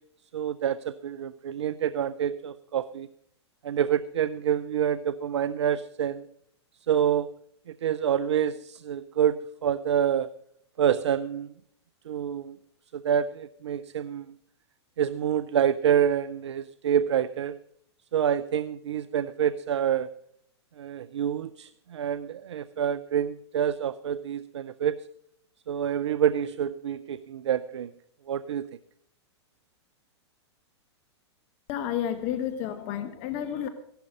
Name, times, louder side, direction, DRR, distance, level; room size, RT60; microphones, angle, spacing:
voice 1, 0.3-3.1 3.6-6.3 6.9-7.3 7.7-10.3 10.8-11.5 12.1-12.6 12.9-14.3 15.0-17.6 18.1-20.1 20.8-25.0 25.7-27.9 28.3-28.7, right 9 dB, 75° right, 16 dB, 0.5 m, -27 dB
voice 2, 31.7-33.7, left 10 dB, 45° left, 10 dB, 1.2 m, -31 dB
16.0 x 11.5 x 5.4 m, 0.71 s
hypercardioid pair, 110°, 15 cm